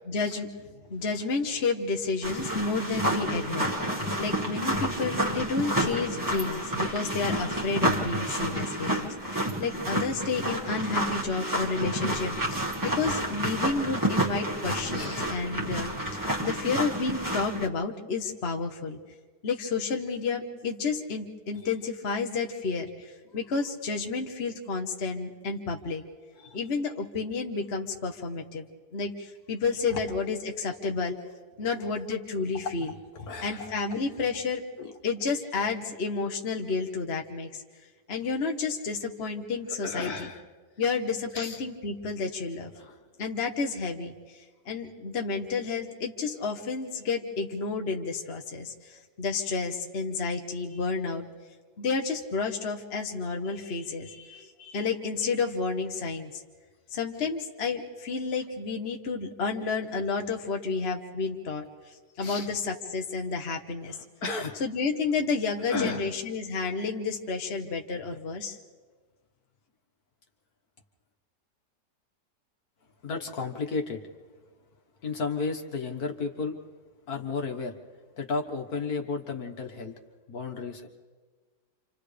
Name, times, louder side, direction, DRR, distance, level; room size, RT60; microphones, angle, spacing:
voice 1, 0.1-19.0 19.4-26.0 26.4-28.7 28.9-31.2 31.6-32.9 33.4-34.6 35.0-37.6 38.1-40.1 40.8-42.7 43.2-44.4 44.7-51.3 51.8-56.4 56.9-61.7 62.2-64.0 64.6-68.6, left 4 dB, 40° left, 2 dB, 1.3 m, -31 dB
sound 1, 2.2-17.7, right 1 dB, 10° right, 1.7 m, -30 dB
voice 2, 14.9-15.3 23.3-23.4 26.4-26.6 29.9-30.1 32.7-33.7 34.8-34.9 39.8-40.4 41.3-41.6 42.8-43.0 62.2-62.5 63.9-64.6 65.7-66.1 73.0-74.0 75.0-76.6 77.1-77.7 78.2-79.9 80.3-80.9, left 4 dB, 60° left, 4 dB, 1.9 m, -33 dB
29.5 x 27.0 x 3.4 m, 1.5 s
omnidirectional pair, 1.8 m